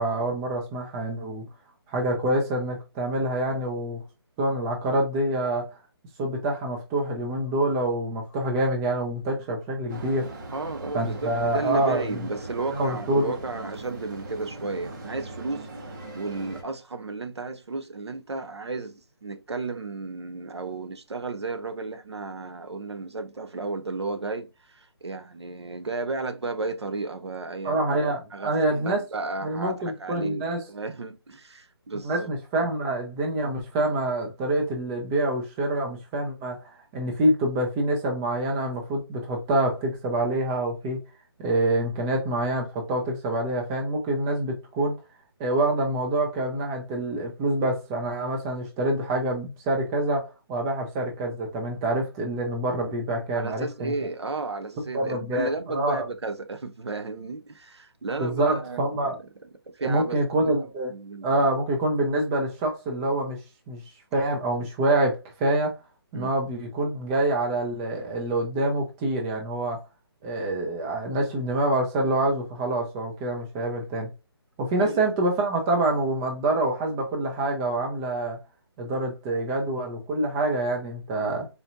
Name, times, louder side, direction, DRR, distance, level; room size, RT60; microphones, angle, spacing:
voice 1, 0.0-1.4 1.9-4.0 4.4-5.7 6.2-10.3 10.9-12.2 12.7-13.3 27.6-29.0 29.4-30.6 32.0-36.6 36.9-41.0 41.4-45.0 45.4-53.9 54.9-56.0 58.2-59.2 59.8-60.9 61.2-63.4 63.7-63.8 64.1-65.7 66.1-69.8 70.2-74.1 74.6-78.4 78.8-81.5, right 1 dB, 10° right, 0.4 m, -26 dB
sound 1, 9.9-16.6, right 2 dB, 45° right, 1.3 m, -40 dB
voice 2, 10.5-15.7 16.1-32.3 53.3-59.1 59.7-61.3 66.1-66.4 74.8-75.0, right 3 dB, 90° right, 0.8 m, -33 dB
4.2 x 2.7 x 2.5 m
hypercardioid pair, 165°, 14 cm